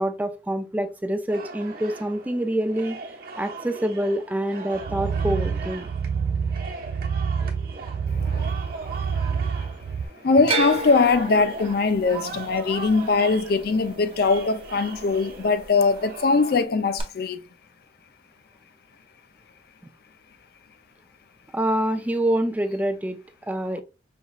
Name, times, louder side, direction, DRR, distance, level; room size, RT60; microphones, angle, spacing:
voice 1, 0.0-3.0 3.4-5.9 21.5-23.8, right 1 dB, 10° right, 0.3 m, -26 dB
sound 1, 1.3-16.6, right 3 dB, 55° right, 1.0 m, -39 dB
sound 2, 4.7-10.1, right 6 dB, 85° right, 0.4 m, -27 dB
voice 2, 8.1-8.6 9.3-9.5 10.2-17.4, left 4 dB, 55° left, 0.4 m, -21 dB
sound 3, 10.5-14.7 14.9-15.6 17.0-17.1, right 4 dB, 30° right, 0.7 m, -32 dB
5.1 x 3.0 x 2.3 m
head